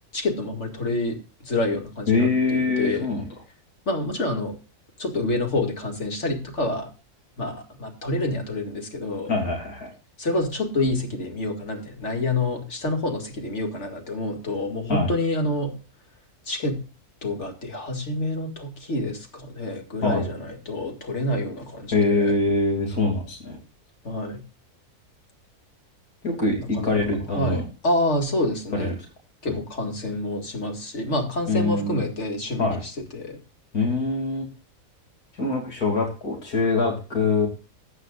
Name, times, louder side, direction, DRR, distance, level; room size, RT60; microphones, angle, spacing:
voice 1, 0.1-3.1 3.9-4.5 5.0-6.9 7.4-9.3 10.2-15.8 16.5-16.8 17.2-22.3 24.0-24.4 26.6-26.9 27.3-28.9 29.4-32.8 33.1-33.4, left 2 dB, 50° left, 3 dB, 2.4 m, -27 dB
voice 2, 2.1-3.3 9.3-9.9 14.9-15.1 20.0-20.3 21.9-23.6 26.2-27.6 28.7-28.9 29.5-29.6 31.5-32.0 32.6-32.8 33.7-34.5 35.4-37.5, left 3 dB, 70° left, 1 dB, 3.4 m, -24 dB
14.0 x 9.3 x 2.5 m, 0.34 s
omnidirectional pair, 1.6 m